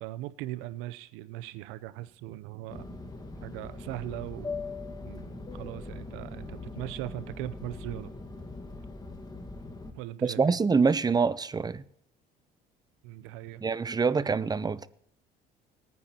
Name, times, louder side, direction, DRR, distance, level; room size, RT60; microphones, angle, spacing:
voice 1, 0.0-2.9 3.4-4.5 5.1-8.1 9.9-10.6 13.0-13.6, right 15 dB, 85° right, 0.6 m, -39 dB
Fixed-wing aircraft airplane, 2.7-9.9, left 3 dB, 20° left, 1.5 m, -41 dB
voice 2, 10.2-11.8 13.6-14.9, right 5 dB, 20° right, 0.6 m, -25 dB
19.0 x 9.4 x 2.9 m
supercardioid pair, 85°, 20 cm